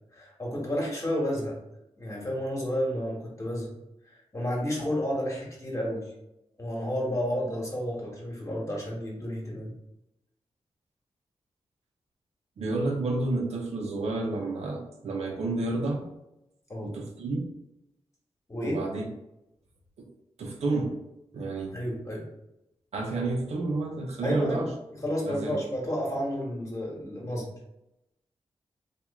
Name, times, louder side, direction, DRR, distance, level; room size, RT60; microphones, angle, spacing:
voice 1, 0.1-1.6 2.0-3.7 4.3-6.1 6.6-9.7 16.7-16.9 18.5-18.8 21.7-22.3 24.2-24.7 24.9-27.5, equal, 30° left, -2 dB, 1.2 m, -31 dB
voice 2, 12.6-16.0 16.8-17.5 18.6-19.1 20.0-20.1 20.4-20.9 21.3-21.8 22.9-24.7 25.3-25.6, right 2 dB, 85° right, 1 dB, 0.7 m, -30 dB
3.0 x 2.5 x 3.5 m, 0.88 s
cardioid pair, 75°, 11 cm